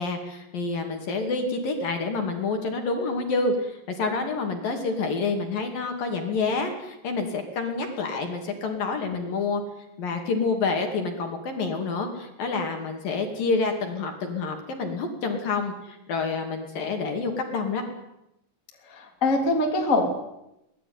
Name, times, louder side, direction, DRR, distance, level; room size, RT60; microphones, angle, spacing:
voice 1, 0.0-9.6 10.0-17.8, left 4 dB, 50° left, 4 dB, 3.8 m, -28 dB
voice 2, 18.9-20.1, left 2 dB, 20° left, 2 dB, 2.7 m, -23 dB
24.0 x 19.0 x 9.5 m, 0.87 s
omnidirectional pair, 5.6 m